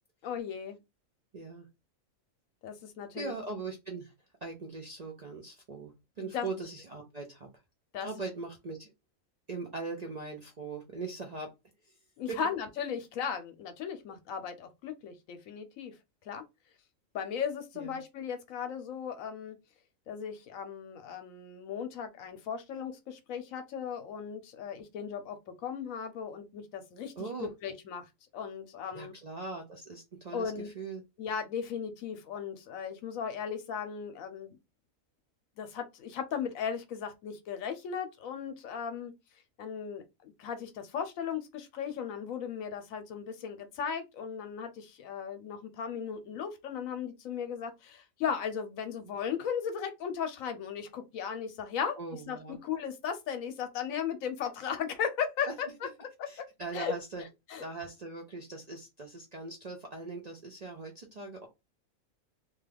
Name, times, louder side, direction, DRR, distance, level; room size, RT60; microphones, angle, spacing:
voice 1, 0.2-0.8 2.6-3.3 6.2-6.5 7.9-8.1 12.2-15.9 16.2-16.4 17.1-19.6 20.1-25.4 25.6-27.1 27.4-29.1 30.3-30.7 31.2-34.6 35.6-39.1 39.6-52.0 52.3-55.7 56.0-56.1 56.7-57.0 57.5-57.6, left 7 dB, 80° left, 1.0 m, -36 dB
voice 2, 1.3-1.7 3.1-4.1 4.4-7.5 8.0-8.9 9.5-11.5 12.3-12.4 17.8-18.0 27.2-27.5 28.9-31.0 52.0-52.6 55.4-55.5 56.3-57.2 57.6-61.5, right 3 dB, 50° right, 0.5 m, -40 dB
2.8 x 2.3 x 3.3 m
omnidirectional pair, 1.4 m